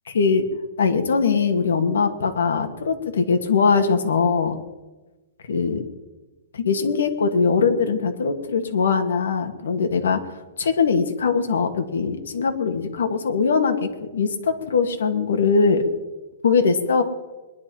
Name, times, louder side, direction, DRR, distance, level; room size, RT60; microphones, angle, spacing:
voice 1, 0.1-0.4 0.8-4.6 5.5-5.8 6.5-15.9 16.4-17.0, left 5 dB, 90° left, 6 dB, 2.2 m, -21 dB
22.0 x 11.0 x 5.6 m, 1.2 s
hypercardioid pair, 165°, 0 cm